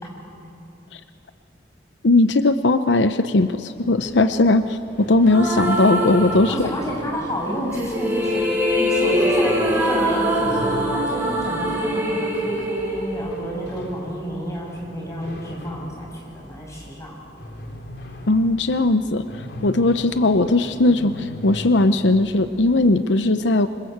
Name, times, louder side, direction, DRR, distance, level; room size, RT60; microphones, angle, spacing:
voice 1, 2.0-6.7 18.3-23.7, left 2 dB, 85° left, 11 dB, 0.8 m, -18 dB
sound 1, 3.8-23.0, left 1 dB, 65° left, 3.5 m, -40 dB
sound 2, 5.3-7.0 7.7-13.8, equal, 10° right, 5.7 m, -23 dB
voice 2, 6.5-8.4 8.8-16.1 16.3-17.2, equal, 15° left, -2 dB, 7.4 m, -30 dB
26.5 x 25.5 x 8.0 m, 2.9 s
head